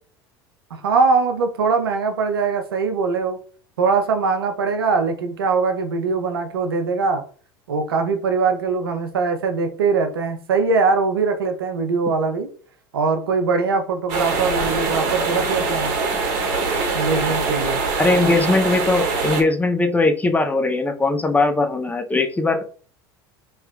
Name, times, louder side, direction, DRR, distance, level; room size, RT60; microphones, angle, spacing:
voice 1, 0.7-3.4 3.8-7.2 7.7-12.5 12.9-15.9 16.9-17.8, right 4 dB, 85° right, 6 dB, 0.6 m, -21 dB
sound 1, 14.1-19.4, right 4 dB, 60° right, 1.1 m, -23 dB
voice 2, 18.0-22.6, left 3 dB, 15° left, 6 dB, 0.5 m, -20 dB
3.2 x 2.9 x 2.4 m, 0.42 s
hypercardioid pair, 80°, 12 cm